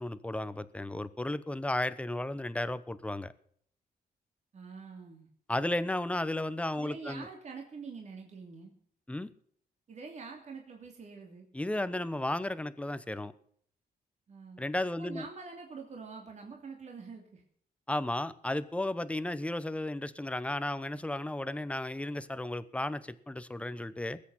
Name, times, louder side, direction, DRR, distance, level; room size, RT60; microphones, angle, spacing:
voice 1, 0.0-3.3 5.5-7.3 9.1-9.3 11.5-13.3 14.6-15.3 17.9-24.2, left 1 dB, 10° left, 14 dB, 0.9 m, -34 dB
voice 2, 4.5-5.3 6.8-8.7 9.9-11.5 14.3-14.6 15.0-17.4, right 4 dB, 45° right, 2 dB, 2.9 m, -45 dB
20.5 x 8.5 x 5.7 m, 0.63 s
wide cardioid pair, 140°, 16 cm